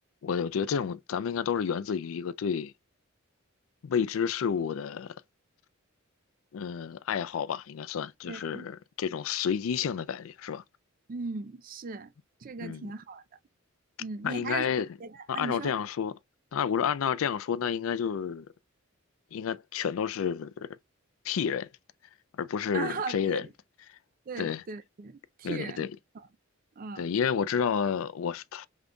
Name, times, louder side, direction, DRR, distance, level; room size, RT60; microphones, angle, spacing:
voice 1, 0.2-2.7 3.8-5.1 6.5-10.6 12.6-12.9 14.2-14.9 15.3-16.2 16.5-18.5 19.3-20.7 21.2-21.7 22.4-23.4 24.4-24.6 25.4-25.9 27.0-28.7, left 7 dB, 75° left, 0.4 m, -30 dB
voice 2, 8.2-8.7 11.1-12.1 12.4-13.2 14.0-15.7 22.7-23.5 24.3-25.9 26.1-26.2 26.8-27.0, right 4 dB, 40° right, 0.4 m, -38 dB
5.2 x 3.7 x 2.2 m
head